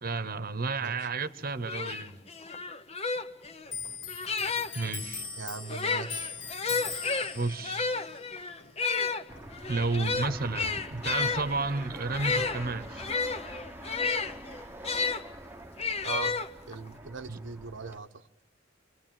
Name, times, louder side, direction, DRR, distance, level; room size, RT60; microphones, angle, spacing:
voice 1, 0.0-2.2 4.7-5.2 7.3-7.9 9.7-13.1 17.3-17.4, right 3 dB, 50° right, 1.1 m, -32 dB
sound 1, 1.3-1.4 1.7-4.9 5.6-15.2 15.8-16.9, left 4 dB, 35° left, 1.0 m, -32 dB
Clock, 3.7-10.7 11.0-12.3 12.6-13.4, left 6 dB, 80° left, 2.3 m, -42 dB
voice 2, 5.4-6.3 16.0-16.4 16.7-18.3, right 4 dB, 85° right, 1.0 m, -39 dB
Fixed-wing aircraft airplane, 9.3-18.0, right 1 dB, 10° right, 1.1 m, -45 dB
27.5 x 24.0 x 9.1 m
head